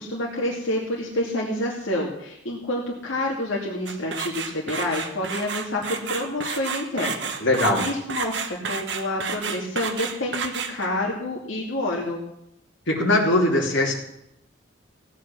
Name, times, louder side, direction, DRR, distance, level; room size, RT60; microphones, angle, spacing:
voice 1, 0.0-7.3 7.8-12.2, left 1 dB, 85° left, -3 dB, 2.4 m, -28 dB
sound 1, 3.9-11.0, right 6 dB, 65° right, 1.1 m, -31 dB
voice 2, 7.4-7.8 12.9-13.9, left 1 dB, 70° left, -2 dB, 2.9 m, -20 dB
16.5 x 8.7 x 6.2 m, 0.80 s
head